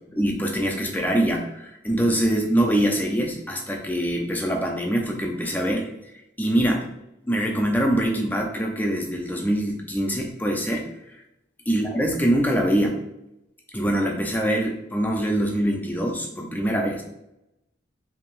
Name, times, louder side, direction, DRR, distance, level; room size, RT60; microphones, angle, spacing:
voice 1, 0.1-5.9 6.4-6.8 7.3-11.2 11.7-13.0 13.7-17.0, right 1 dB, 10° left, 1 dB, 0.5 m, -24 dB
4.8 x 3.6 x 2.5 m, 0.85 s
head